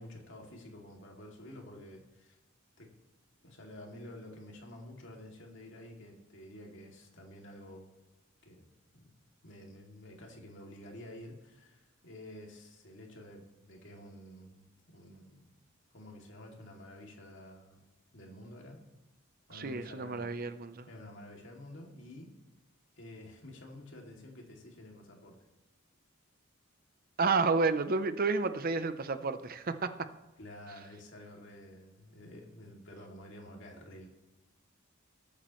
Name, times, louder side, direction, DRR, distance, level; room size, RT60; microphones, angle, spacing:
voice 1, 0.0-2.4 2.8-2.9 3.4-7.9 8.4-9.2 9.4-15.5 15.9-17.9 18.1-18.8 19.5-20.3 20.9-22.3 23.0-25.4 30.4-34.1, left 1 dB, 60° left, 0 dB, 2.5 m, -50 dB
voice 2, 19.5-20.9 27.2-29.9, right 4 dB, 45° right, 11 dB, 0.6 m, -30 dB
20.0 x 8.5 x 3.1 m, 1.0 s
head